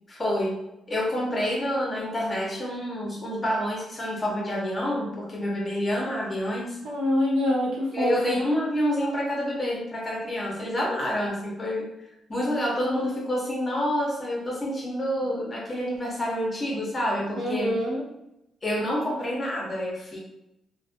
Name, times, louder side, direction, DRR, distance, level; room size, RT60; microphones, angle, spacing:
voice 1, 0.1-6.8 7.9-11.9 12.3-17.8 18.6-20.2, equal, 25° left, -3 dB, 0.7 m, -28 dB
voice 2, 6.8-8.4 17.3-18.0, left 1 dB, 85° right, -4 dB, 0.9 m, -25 dB
2.5 x 2.1 x 2.5 m, 0.88 s
cardioid pair, 115°, 0 cm